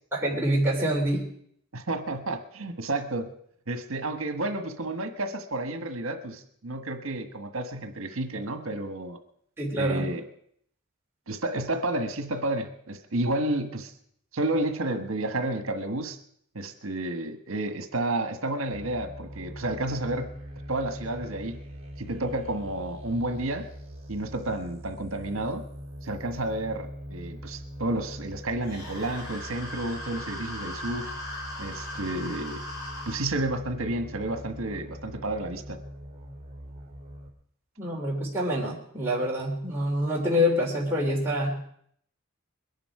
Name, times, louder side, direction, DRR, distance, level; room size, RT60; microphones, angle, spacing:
voice 1, 0.1-1.3 9.6-10.1 37.8-41.6, equal, 10° right, -5 dB, 3.1 m, -26 dB
voice 2, 1.7-3.3 3.7-9.2 9.8-10.2 11.3-13.9 14.3-16.2 16.5-20.3 20.7-21.6 22.0-23.7 24.1-25.6 26.0-31.1 31.6-32.6 33.1-35.8, right 2 dB, 70° right, 8 dB, 1.4 m, -31 dB
sound 1, 18.7-37.3, equal, 30° right, 3.2 m, -42 dB
sound 2, 28.6-33.3, left 1 dB, 75° left, 7.8 m, -39 dB
22.0 x 11.0 x 4.8 m, 0.66 s
head